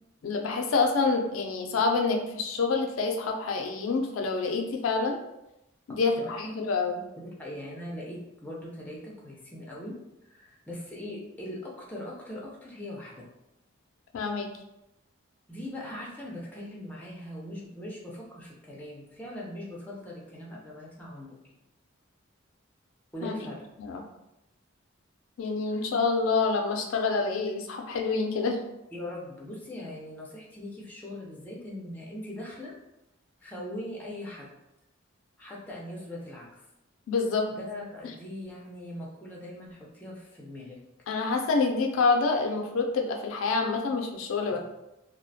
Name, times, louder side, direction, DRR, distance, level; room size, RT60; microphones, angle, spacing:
voice 1, 0.2-5.2 5.9-7.0 14.1-14.5 23.2-23.3 23.8-24.0 25.4-28.6 37.1-37.5 41.1-44.6, left 4 dB, 75° left, 3 dB, 0.3 m, -27 dB
voice 2, 5.9-6.5 7.4-9.9 10.2-13.3 15.5-21.6 23.1-23.6 25.7-25.8 28.9-32.7 33.4-34.5 35.4-36.5 37.5-40.8 44.5-44.6, left 1 dB, 10° left, -4 dB, 0.4 m, -40 dB
2.3 x 2.1 x 2.6 m, 0.91 s
head